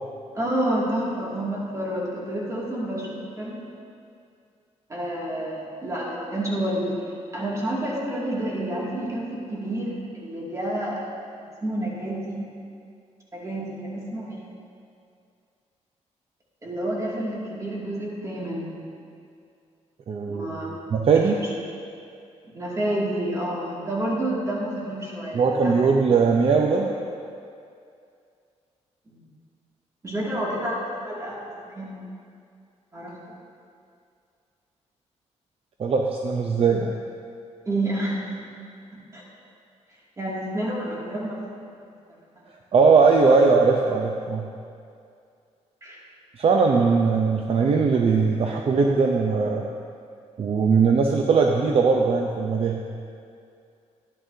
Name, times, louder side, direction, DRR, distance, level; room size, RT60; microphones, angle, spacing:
voice 1, 0.3-3.6 4.9-7.0 7.3-11.0 11.6-12.5 13.3-14.5 16.6-18.8 20.3-20.7 21.1-21.5 22.5-25.7 29.1-29.2 30.0-32.0 32.9-33.2 37.7-38.4 38.9-39.2 40.2-41.4 45.8-46.0, right 1 dB, 25° right, -5 dB, 2.4 m, -29 dB
voice 2, 20.1-20.6 20.9-21.4 25.3-26.9 35.8-36.9 42.7-44.4 46.4-49.7 50.4-52.8, right 4 dB, 55° right, 1 dB, 0.6 m, -20 dB
12.5 x 10.5 x 2.8 m, 2.4 s
cardioid pair, 110°, 12 cm